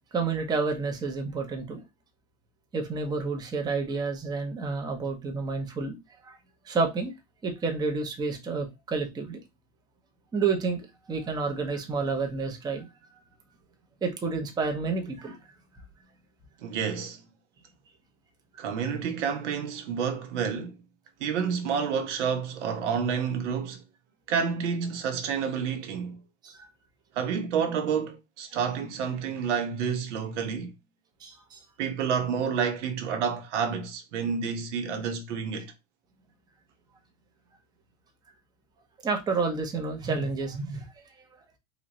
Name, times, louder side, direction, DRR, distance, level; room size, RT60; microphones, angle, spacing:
voice 1, 0.1-1.8 2.7-6.0 6.2-6.4 6.6-7.1 7.4-9.4 10.3-12.9 14.0-15.4 26.4-26.7 31.2-31.6 35.6-35.7 39.0-41.2, right 4 dB, 10° right, 0.6 m, -30 dB
voice 2, 16.6-17.2 18.6-20.7 21.2-23.8 24.3-26.2 27.1-30.7 31.8-35.7, right 6 dB, 80° right, 1.1 m, -29 dB
3.9 x 2.5 x 3.0 m
supercardioid pair, 140°, 35 cm